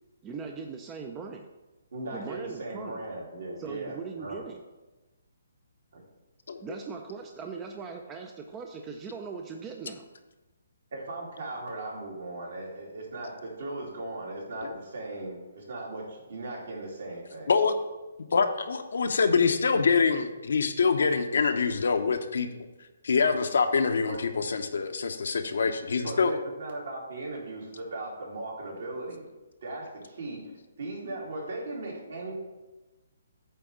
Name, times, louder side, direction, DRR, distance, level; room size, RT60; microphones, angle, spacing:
voice 1, 0.2-1.5 2.1-3.0 3.6-4.6 6.6-10.1, right 5 dB, 15° right, 3 dB, 0.5 m, -40 dB
voice 2, 1.9-4.4 5.9-6.0 10.9-17.5 24.1-24.2 26.0-29.3 29.6-30.5 30.8-32.3, right 2 dB, 65° right, -3 dB, 2.8 m, -38 dB
voice 3, 18.3-22.5 23.0-26.3, left 5 dB, 70° left, 7 dB, 0.8 m, -25 dB
9.0 x 3.5 x 6.3 m, 1.1 s
hypercardioid pair, 155°, 0 cm